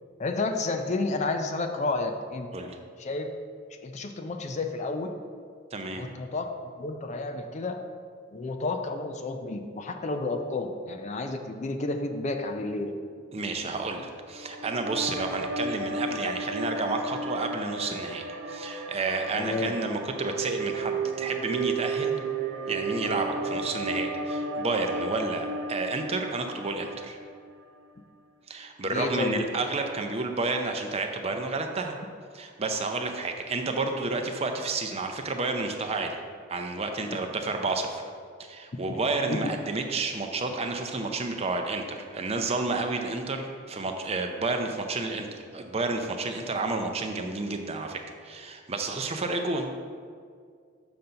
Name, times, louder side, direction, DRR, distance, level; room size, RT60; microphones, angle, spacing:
voice 1, 0.2-2.7 3.0-3.3 3.8-5.1 5.9-6.5 6.8-7.8 8.3-12.9 19.3-19.7 28.9-29.4 37.1-37.2 38.9-39.0 39.3-39.5, left 3 dB, 35° left, 6 dB, 0.4 m, -31 dB
voice 2, 5.7-6.0 13.3-22.2 22.7-27.2 28.5-32.0 32.3-36.2 36.5-38.0 38.4-49.9, right 3 dB, 30° right, 4 dB, 0.5 m, -30 dB
sound 1, 14.2-27.6, right 3 dB, 70° right, 0.7 m, -33 dB
6.9 x 3.9 x 5.6 m, 2.1 s
head